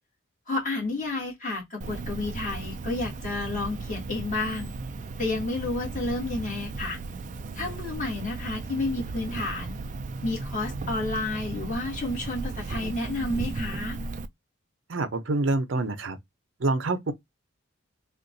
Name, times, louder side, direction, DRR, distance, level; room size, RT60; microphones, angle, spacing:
voice 1, 0.5-4.7 5.2-7.0 7.6-9.8 10.2-14.0, left 2 dB, 40° left, 1.8 m, -31 dB
Cricket, 1.8-14.3, right 3 dB, 40° right, 0.3 m, -36 dB
voice 2, 14.9-16.2 16.6-17.1, right 2 dB, 65° right, 0.7 m, -26 dB
3.6 x 2.4 x 2.6 m
head